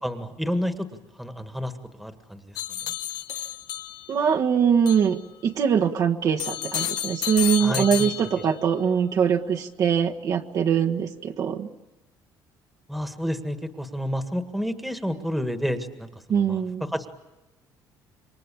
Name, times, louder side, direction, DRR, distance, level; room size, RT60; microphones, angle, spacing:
voice 1, 0.0-0.9 1.2-1.7 2.0-2.6 7.6-8.3 12.9-17.1, equal, ahead, 8 dB, 1.8 m, -30 dB
sound 1, 2.6-4.3 4.9-5.1 6.4-8.7, left 12 dB, 65° left, 1.2 m, -31 dB
voice 2, 4.1-11.7 16.3-16.9, right 7 dB, 50° right, 2 dB, 1.5 m, -23 dB
28.0 x 24.0 x 8.6 m, 1.0 s
cardioid pair, 140°, 8 cm